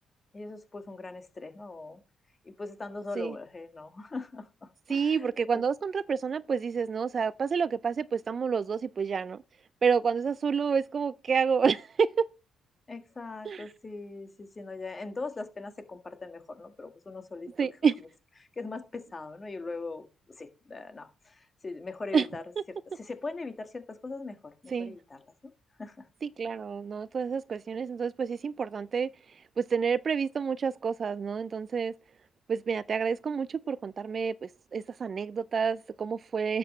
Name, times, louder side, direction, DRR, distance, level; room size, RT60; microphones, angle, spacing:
voice 1, 0.3-2.0 2.4-5.6 12.9-17.7 18.4-22.4 22.7-25.5 25.8-26.1, left 3 dB, 30° left, 1.6 m, -41 dB
voice 2, 4.9-9.4 9.8-12.3 13.5-13.6 17.6-17.9 22.1-22.3 24.7-24.9 26.2-29.1 29.6-31.9 32.5-36.6, right 6 dB, 45° right, 0.3 m, -29 dB
11.0 x 7.7 x 3.1 m
cardioid pair, 90°, 0 cm